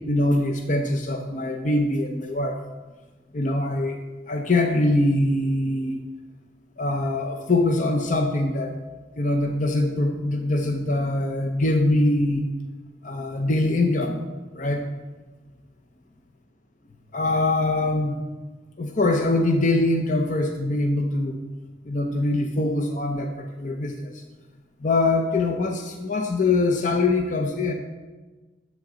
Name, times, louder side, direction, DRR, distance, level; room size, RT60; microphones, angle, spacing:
voice 1, 0.1-2.6 3.3-4.0 4.3-6.0 6.8-8.7 9.2-12.5 13.0-14.2 14.5-14.8 17.1-18.2 18.8-21.4 21.9-24.2 24.8-27.7, left 2 dB, 45° left, 4 dB, 0.8 m, -23 dB
10.5 x 7.7 x 5.1 m, 1.3 s
head